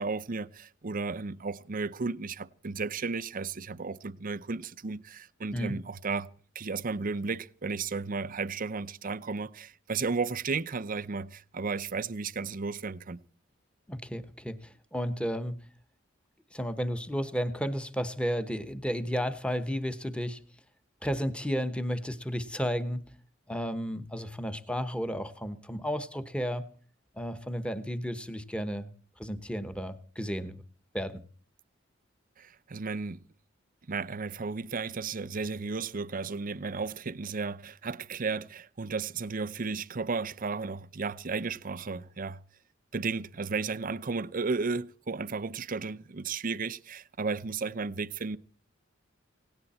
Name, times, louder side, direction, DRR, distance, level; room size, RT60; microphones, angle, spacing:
voice 1, 0.0-6.3 6.5-13.2 32.4-33.2 33.9-42.4 42.9-48.4, right 4 dB, 45° right, 0.7 m, -34 dB
voice 2, 13.9-15.6 16.5-20.4 21.0-23.0 23.5-26.7 27.2-28.9 29.2-30.6 30.9-31.2, equal, 5° left, 1.2 m, -33 dB
18.0 x 17.5 x 4.3 m
head